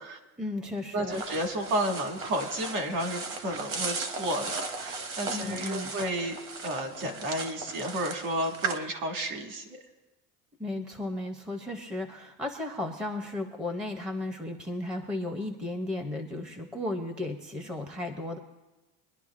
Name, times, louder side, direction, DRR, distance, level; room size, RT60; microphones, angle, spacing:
voice 1, 0.4-1.2 5.3-6.0 10.6-18.4, left 2 dB, ahead, 5 dB, 0.5 m, -34 dB
voice 2, 0.9-6.4 6.6-9.6, right 1 dB, 50° right, 3 dB, 2.0 m, -32 dB
sound 1, 1.1-8.8, right 4 dB, 35° right, 0.9 m, -37 dB
23.0 x 11.0 x 2.4 m, 1.1 s
cardioid pair, 170°, 38 cm